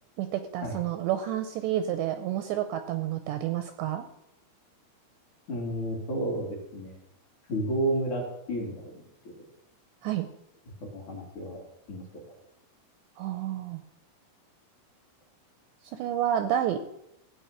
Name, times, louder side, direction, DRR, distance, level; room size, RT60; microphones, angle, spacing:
voice 1, 0.2-4.0 10.0-10.3 13.2-13.8 15.9-16.8, right 11 dB, 80° right, 8 dB, 2.6 m, -29 dB
voice 2, 5.5-7.0 7.5-9.3 10.9-11.6 11.9-12.0, right 1 dB, 45° left, -2 dB, 3.4 m, -31 dB
16.0 x 5.4 x 9.0 m, 0.78 s
omnidirectional pair, 5.7 m